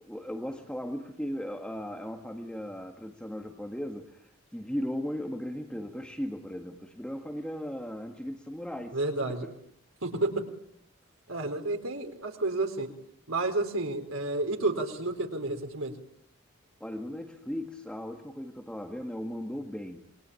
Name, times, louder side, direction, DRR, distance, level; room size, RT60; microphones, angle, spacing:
voice 1, 0.0-9.0 9.3-9.5 16.8-20.1, equal, 5° left, 3 dB, 1.8 m, -37 dB
voice 2, 8.9-9.5 10.0-10.5 11.3-12.9 13.3-15.9, right 2 dB, 90° right, 6 dB, 4.3 m, -30 dB
27.5 x 23.5 x 8.9 m, 0.67 s
head